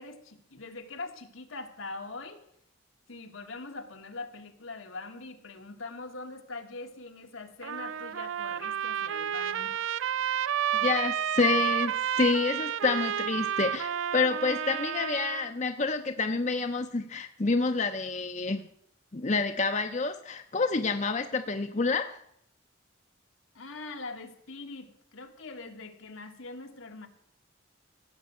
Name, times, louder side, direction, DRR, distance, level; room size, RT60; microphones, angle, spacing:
voice 1, 0.0-2.5 3.1-9.8 23.5-27.1, left 3 dB, 85° left, 4 dB, 1.9 m, -42 dB
Trumpet, 7.6-15.5, right 9 dB, 75° right, 0.4 m, -31 dB
voice 2, 10.7-18.6 19.1-22.2, left 4 dB, 35° left, 7 dB, 0.7 m, -28 dB
16.0 x 7.6 x 7.6 m, 0.68 s
head